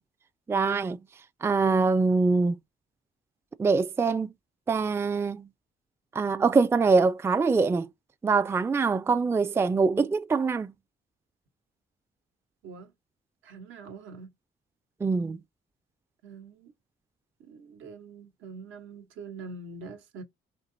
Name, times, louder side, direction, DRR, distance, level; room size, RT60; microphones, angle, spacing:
voice 1, 0.5-1.0 1.4-2.6 3.6-4.3 4.7-5.5 6.1-7.9 8.2-10.7 15.0-15.4, right 4 dB, 10° right, 0.3 m, -24 dB
voice 2, 13.4-14.3 16.2-16.7 17.4-20.2, right 4 dB, 80° right, 1.2 m, -44 dB
4.5 x 2.9 x 3.8 m
cardioid pair, 90°, 20 cm